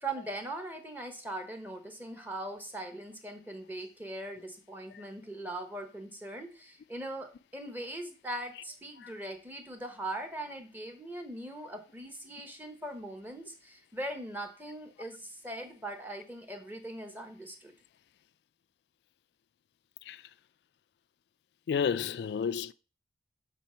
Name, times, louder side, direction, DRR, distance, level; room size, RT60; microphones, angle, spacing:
voice 1, 0.0-17.7, right 1 dB, 10° right, 1.0 m, -40 dB
voice 2, 21.7-22.7, left 7 dB, 70° left, 0.3 m, -31 dB
7.3 x 4.0 x 5.6 m
head